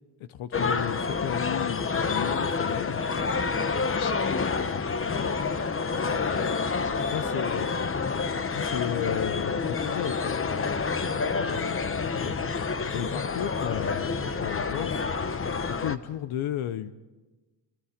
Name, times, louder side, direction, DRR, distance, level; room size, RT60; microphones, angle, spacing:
voice 1, 0.2-3.0 7.1-7.7 8.5-10.4 11.1-12.3 12.9-15.0 15.5-16.9, left 11 dB, 75° left, 12 dB, 0.9 m, -34 dB
sound 1, 0.5-16.0, left 5 dB, 25° left, 1.0 m, -28 dB
voice 2, 3.6-5.5 6.0-7.6 11.3-11.6, left 10 dB, 55° left, 13 dB, 1.1 m, -46 dB
28.0 x 24.0 x 5.1 m, 1.2 s
cardioid pair, 120°, 49 cm